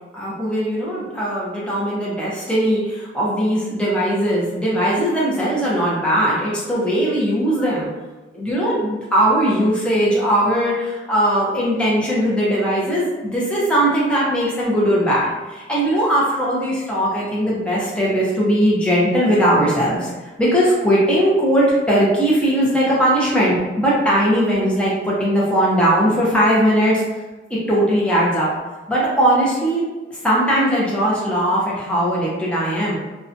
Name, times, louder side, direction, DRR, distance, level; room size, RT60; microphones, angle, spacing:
voice 1, 0.1-7.9 8.3-27.0 27.5-28.5 28.9-29.8 30.1-33.0, equal, 5° left, -6 dB, 0.5 m, -19 dB
2.6 x 2.1 x 2.5 m, 1.2 s
head